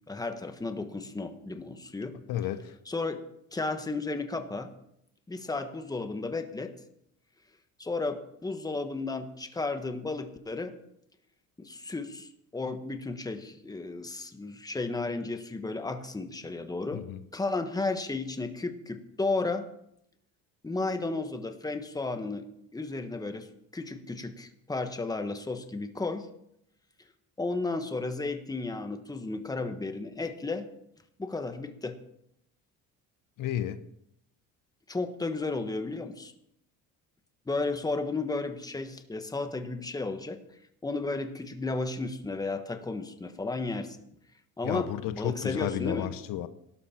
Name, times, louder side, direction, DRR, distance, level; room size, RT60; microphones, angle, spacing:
voice 1, 0.1-2.2 2.9-3.2 3.5-4.7 5.3-6.7 7.8-10.7 11.6-17.0 17.3-19.7 20.6-22.5 22.7-26.3 27.4-30.7 31.2-32.0 34.9-36.3 37.5-40.4 40.8-44.0 44.6-46.1, left 3 dB, 10° left, 1.3 m, -33 dB
voice 2, 2.3-2.6 16.9-17.2 33.4-33.8 44.6-46.5, left 11 dB, 70° left, 1.0 m, -32 dB
18.0 x 12.0 x 4.4 m
cardioid pair, 115°, 34 cm